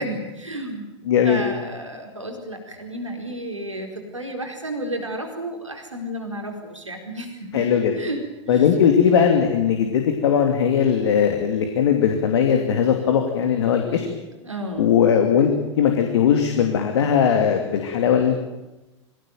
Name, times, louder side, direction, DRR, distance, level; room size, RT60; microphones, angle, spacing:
voice 1, 0.0-0.9 1.2-7.6 7.9-8.2 8.5-8.8 14.4-14.9, right 1 dB, 85° right, 3 dB, 4.5 m, -32 dB
voice 2, 1.0-1.4 7.5-7.9 8.5-14.1 14.8-18.4, left 8 dB, 65° left, 4 dB, 2.8 m, -19 dB
24.0 x 17.5 x 9.2 m, 1.0 s
figure-of-eight pair, 90°, 15 cm